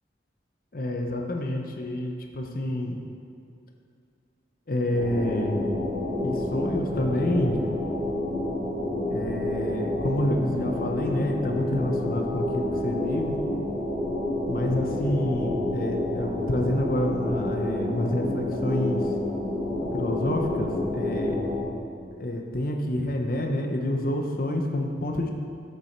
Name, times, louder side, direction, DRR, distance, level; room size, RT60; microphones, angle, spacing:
voice 1, 0.7-3.0 4.7-5.6 6.2-7.6 9.1-13.3 14.5-19.0 19.9-21.4 22.2-25.3, left 1 dB, 50° left, 2 dB, 0.7 m, -28 dB
sound 1, 4.9-21.6, left 1 dB, 25° right, 2.3 m, -29 dB
8.2 x 6.8 x 4.5 m, 2.3 s
head